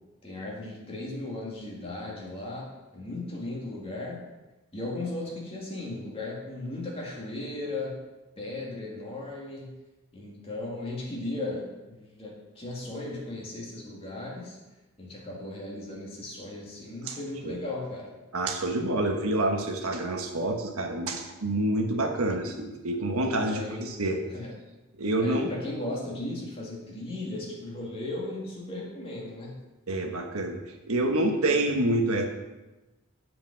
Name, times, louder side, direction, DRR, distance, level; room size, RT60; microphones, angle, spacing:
voice 1, 0.2-4.2 4.7-8.0 8.4-9.7 10.1-14.6 15.0-18.1 23.4-24.5 25.2-29.6, left 2 dB, 25° left, -4 dB, 2.3 m, -36 dB
voice 2, 18.3-24.2 25.0-25.5 29.9-30.6 30.9-32.2, right 1 dB, 85° right, 3 dB, 1.3 m, -27 dB
7.7 x 5.1 x 7.5 m, 1.1 s
head